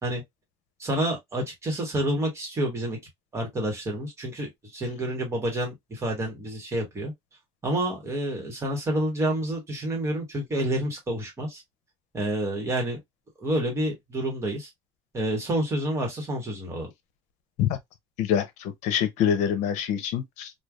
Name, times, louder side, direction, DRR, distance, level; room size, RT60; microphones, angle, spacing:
voice 1, 0.8-3.0 3.3-7.1 7.6-11.6 12.1-13.0 13.4-14.7 15.1-16.9, right 1 dB, 25° right, 1.3 m, -28 dB
voice 2, 18.2-20.5, left 9 dB, 80° left, 0.7 m, -25 dB
3.2 x 2.3 x 2.3 m
cardioid pair, 155°, 12 cm